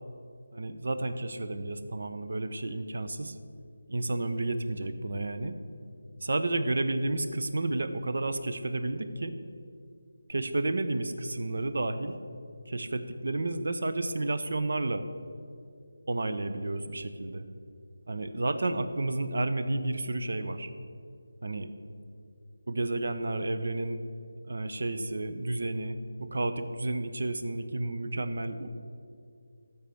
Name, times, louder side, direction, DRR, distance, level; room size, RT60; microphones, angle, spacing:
voice 1, 0.5-3.4 3.9-5.5 6.2-9.4 10.3-12.2 12.7-15.1 16.1-17.5 18.1-20.7 21.4-21.7 22.7-24.0 24.5-28.7, right 2 dB, 60° right, 11 dB, 0.9 m, -31 dB
12.5 x 7.1 x 7.8 m, 2.4 s
figure-of-eight pair, 160°, 0 cm